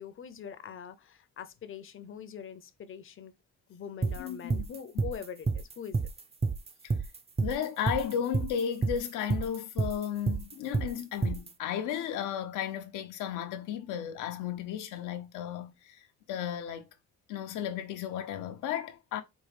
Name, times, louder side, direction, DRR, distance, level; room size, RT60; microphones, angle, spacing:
voice 1, 0.0-3.3 3.7-6.0, left 8 dB, 45° left, 0.6 m, -43 dB
sound 1, 4.0-11.5, right 4 dB, 20° right, 0.4 m, -29 dB
voice 2, 4.2-4.7 7.4-16.0 16.3-16.9 17.3-19.2, left 9 dB, 85° left, 0.7 m, -34 dB
4.5 x 2.4 x 3.3 m
cardioid pair, 90°, 30 cm